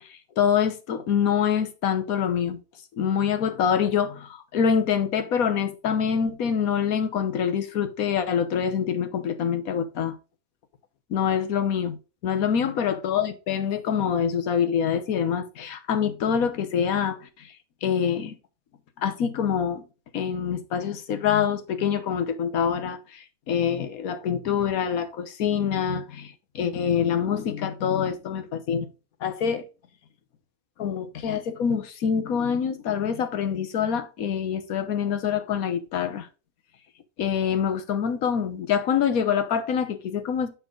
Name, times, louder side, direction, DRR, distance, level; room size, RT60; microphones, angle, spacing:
voice 1, 0.0-2.6 3.0-10.2 11.1-12.0 12.2-17.5 17.8-18.3 19.0-19.8 20.1-28.9 29.2-29.7 30.8-36.3 37.2-40.5, left 7 dB, 70° left, 1.4 m, -25 dB
6.9 x 5.8 x 3.8 m
omnidirectional pair, 1.5 m